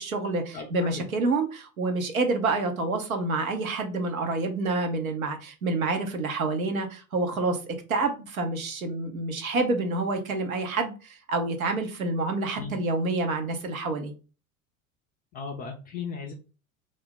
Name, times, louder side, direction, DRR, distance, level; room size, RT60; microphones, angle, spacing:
voice 1, 0.0-14.1, right 3 dB, 75° right, 5 dB, 0.7 m, -28 dB
voice 2, 0.5-1.1 12.5-12.7 15.3-16.3, left 5 dB, 25° left, 1 dB, 0.3 m, -36 dB
2.5 x 2.0 x 3.7 m, 0.34 s
figure-of-eight pair, 75°, 42 cm